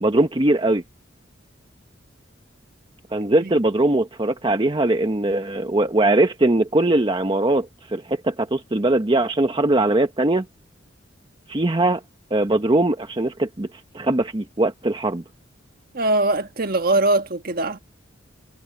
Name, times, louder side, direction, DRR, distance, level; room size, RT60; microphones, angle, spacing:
voice 1, 0.0-0.8 3.1-10.4 11.5-12.0 12.3-13.7 13.9-15.2, right 2 dB, 25° right, 0.9 m, -20 dB
voice 2, 15.9-17.8, right 2 dB, 50° right, 1.4 m, -21 dB
head